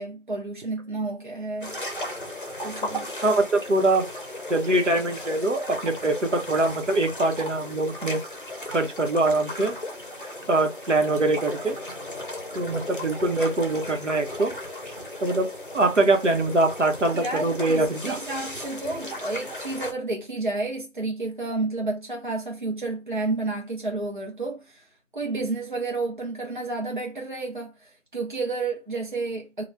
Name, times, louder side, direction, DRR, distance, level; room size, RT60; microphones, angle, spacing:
voice 1, 0.0-1.8 2.6-3.1 17.1-24.8 25.1-29.6, right 3 dB, 40° right, 0.8 m, -31 dB
sound 1, 1.6-19.9, left 1 dB, 45° left, 0.7 m, -36 dB
voice 2, 3.2-4.0 4.5-8.2 8.7-9.7 10.5-11.8 12.5-14.5 14.9-15.0 15.2-15.5 15.7-18.2, right 2 dB, 75° right, 1.0 m, -23 dB
3.2 x 2.3 x 3.1 m
figure-of-eight pair, 180°, 37 cm